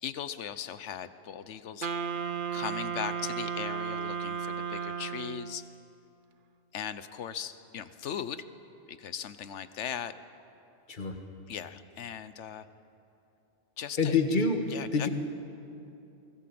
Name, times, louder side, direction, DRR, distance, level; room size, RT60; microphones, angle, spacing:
voice 1, 0.0-1.9 2.5-5.7 6.7-8.5 8.9-10.1 11.5-12.7 13.8-14.1 14.7-15.1, left 9 dB, 80° left, 13 dB, 1.1 m, -38 dB
Wind instrument woodwind instrument, 1.8-5.7, right 6 dB, 50° right, 0.9 m, -34 dB
voice 2, 14.0-14.6 14.9-15.1, left 4 dB, 45° left, 5 dB, 1.7 m, -26 dB
24.0 x 18.5 x 7.7 m, 2.8 s
omnidirectional pair, 1.2 m